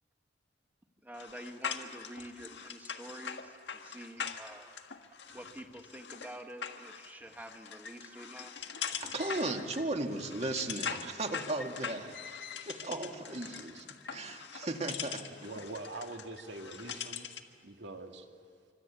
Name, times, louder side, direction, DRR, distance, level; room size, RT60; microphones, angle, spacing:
voice 1, 1.0-4.7 5.3-8.6, right 1 dB, 10° right, 4 dB, 1.9 m, -48 dB
sound 1, 1.1-17.5, left 7 dB, 80° left, 1.6 m, -42 dB
voice 2, 9.0-12.1 12.7-13.9 14.1-15.3, right 2 dB, 40° right, 4 dB, 2.1 m, -36 dB
voice 3, 15.4-17.3 17.6-18.3, right 2 dB, 75° right, 3 dB, 2.6 m, -43 dB
26.5 x 25.0 x 8.5 m, 2.2 s
head